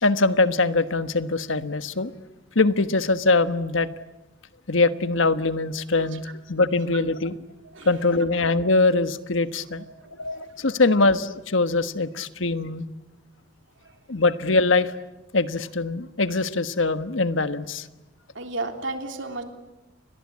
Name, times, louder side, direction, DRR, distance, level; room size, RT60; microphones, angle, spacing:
voice 1, 0.0-2.1 2.5-3.9 4.7-7.4 7.8-9.8 10.2-12.8 14.1-14.9 15.3-17.9, left 3 dB, 75° left, 11 dB, 1.3 m, -22 dB
voice 2, 18.3-19.4, right 2 dB, 65° right, 5 dB, 3.5 m, -32 dB
30.0 x 22.5 x 8.6 m, 1.0 s
head